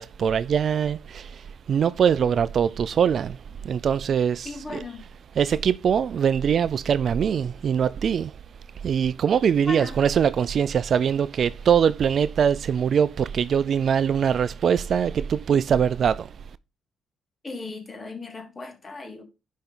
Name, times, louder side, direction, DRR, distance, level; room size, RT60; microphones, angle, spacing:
voice 1, 0.0-4.8 5.4-8.3 8.8-16.4, right 7 dB, 55° right, 0.4 m, -23 dB
voice 2, 4.4-5.0 9.6-10.0 17.4-19.2, left 3 dB, 30° left, 2.6 m, -36 dB
10.5 x 5.2 x 3.8 m
cardioid pair, 90°, 0 cm